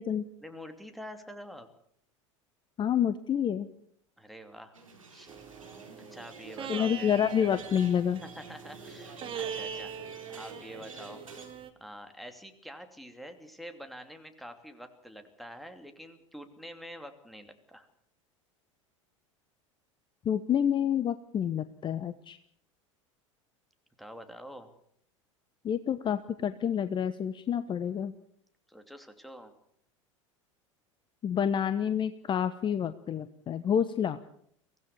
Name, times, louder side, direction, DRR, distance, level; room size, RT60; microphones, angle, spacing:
voice 1, 0.4-1.7 4.2-4.8 5.1-5.3 6.1-7.1 8.2-9.9 10.4-11.2 11.8-17.9 24.0-24.7 28.7-29.5, equal, ahead, 7 dB, 2.9 m, -46 dB
voice 2, 2.8-3.7 6.7-8.2 20.2-22.4 25.6-28.1 31.2-34.2, left 8 dB, 30° left, 12 dB, 1.0 m, -28 dB
sound 1, 4.7-11.5, right 3 dB, 85° right, 4.2 m, -49 dB
sound 2, 5.3-11.7, right 8 dB, 30° right, 2.2 m, -42 dB
23.5 x 17.0 x 7.0 m, 0.68 s
figure-of-eight pair, 80°, 17 cm